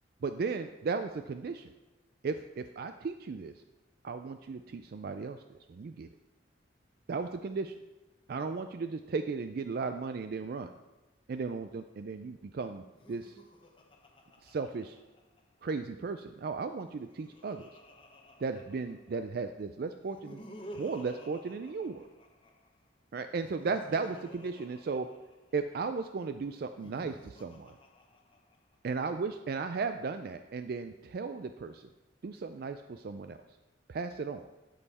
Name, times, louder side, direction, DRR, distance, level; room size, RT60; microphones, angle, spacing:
voice 1, 0.2-1.7 2.2-3.5 4.0-6.1 7.1-7.8 8.3-10.7 11.3-12.8 13.1-13.4 14.4-15.0 15.6-17.7 18.4-20.4 20.7-22.1 23.1-25.1 25.5-27.8 28.8-31.9 32.2-33.4 33.9-34.5, right 4 dB, 50° right, 9 dB, 0.3 m, -35 dB
Laughter, 12.9-15.6 16.7-19.3 20.0-22.7 23.3-25.8 26.6-28.7, equal, 25° left, 0.9 m, -52 dB
12.5 x 5.5 x 4.2 m, 1.1 s
head